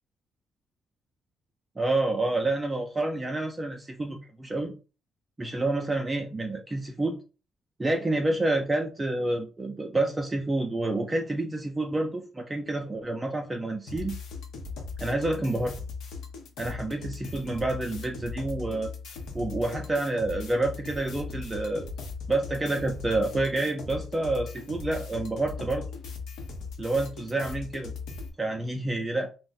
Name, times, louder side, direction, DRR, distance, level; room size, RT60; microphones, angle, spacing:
voice 1, 1.8-4.7 5.4-7.2 7.8-14.2 15.0-15.7 16.6-18.9 19.3-21.9 22.3-25.9 26.8-27.9 28.4-29.3, right 2 dB, 20° right, 2 dB, 0.4 m, -28 dB
sound 1, 13.9-28.3, left 4 dB, 80° left, 0.7 m, -39 dB
2.4 x 2.0 x 3.9 m, 0.35 s
cardioid pair, 90°, 0 cm